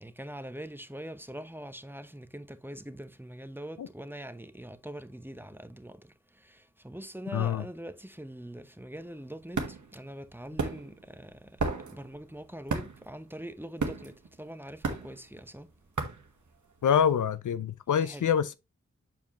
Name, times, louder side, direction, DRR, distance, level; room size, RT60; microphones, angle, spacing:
voice 1, 0.0-6.0 6.4-11.5 11.9-14.1 14.4-15.7 18.0-18.3, right 1 dB, 5° right, 0.9 m, -43 dB
voice 2, 7.3-7.7 16.8-18.5, left 8 dB, 80° left, 0.5 m, -26 dB
sound 1, 8.9-17.1, right 4 dB, 70° right, 1.3 m, -35 dB
7.4 x 4.7 x 3.0 m
cardioid pair, 50°, 30 cm